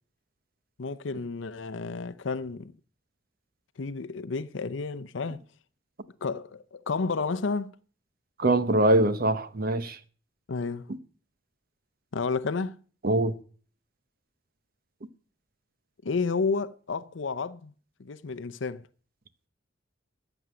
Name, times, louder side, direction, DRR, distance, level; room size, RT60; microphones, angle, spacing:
voice 1, 0.8-2.7 3.8-5.4 6.2-7.7 10.5-10.9 12.1-12.8 16.0-17.7 18.0-18.8, left 4 dB, 75° left, 0.6 m, -31 dB
voice 2, 8.4-10.0 13.0-13.3, right 1 dB, 50° right, 0.9 m, -23 dB
14.0 x 8.0 x 6.2 m
head